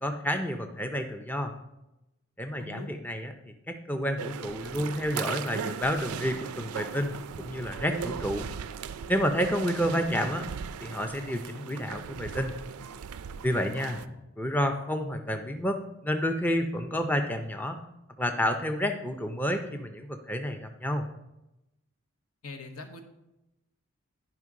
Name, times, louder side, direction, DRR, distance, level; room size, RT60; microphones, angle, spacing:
voice 1, 0.0-1.5 2.4-8.5 9.1-10.4 10.8-12.6 13.4-14.0 14.4-17.8 18.2-21.0, equal, 10° left, 5 dB, 0.4 m, -30 dB
voice 2, 2.6-2.9 9.8-10.3 13.7-14.2 22.4-23.0, left 2 dB, 90° left, 4 dB, 1.1 m, -42 dB
sound 1, 4.2-14.1, right 7 dB, 90° right, 0.4 m, -38 dB
10.5 x 5.2 x 3.7 m, 0.93 s
head